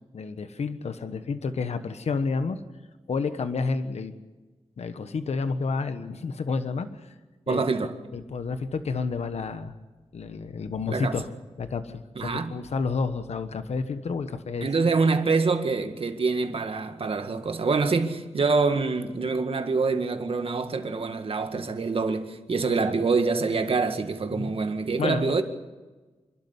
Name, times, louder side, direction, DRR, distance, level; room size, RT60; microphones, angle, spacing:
voice 1, 0.1-2.6 3.1-4.1 4.8-7.1 7.5-7.7 8.1-9.7 10.1-11.3 11.6-14.7 24.3-24.6 25.0-25.4, left 4 dB, 70° left, 1.2 m, -30 dB
voice 2, 7.5-8.0 10.9-11.2 12.2-12.5 14.6-25.4, right 4 dB, 55° right, 1.9 m, -25 dB
27.0 x 12.0 x 9.7 m
wide cardioid pair, 90°, 11 cm